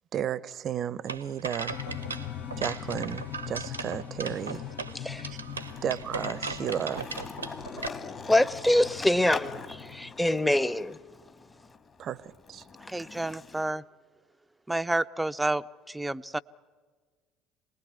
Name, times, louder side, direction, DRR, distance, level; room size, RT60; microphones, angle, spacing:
voice 1, 0.1-1.8 2.6-4.6 5.3-5.4 5.8-7.1 12.0-12.7, right 9 dB, 40° right, 0.8 m, -33 dB
sound 1, 1.1-7.9, right 4 dB, 85° right, 0.9 m, -37 dB
Skateboard, 1.5-3.1 3.5-13.7, left 4 dB, 30° left, 2.4 m, -44 dB
sound 2, 1.7-10.1, left 10 dB, 50° left, 1.0 m, -41 dB
voice 2, 8.3-11.0, left 1 dB, 10° left, 1.1 m, -25 dB
voice 3, 12.9-13.8 14.7-16.4, right 2 dB, 10° right, 0.7 m, -30 dB
28.0 x 20.0 x 9.5 m
figure-of-eight pair, 60°, 0 cm